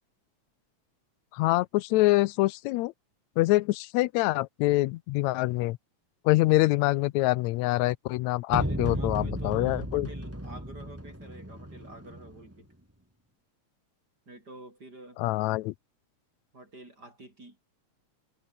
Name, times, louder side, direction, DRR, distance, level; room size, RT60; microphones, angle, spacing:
voice 1, 1.3-2.9 3.4-5.8 6.2-10.1 15.2-15.7, left 19 dB, 80° left, 1.9 m, -25 dB
sound 1, 8.5-12.5, equal, 5° right, 4.4 m, -34 dB
voice 2, 8.5-12.7 14.3-15.2 16.5-17.6, right 2 dB, 30° right, 6.4 m, -48 dB
omnidirectional pair, 3.3 m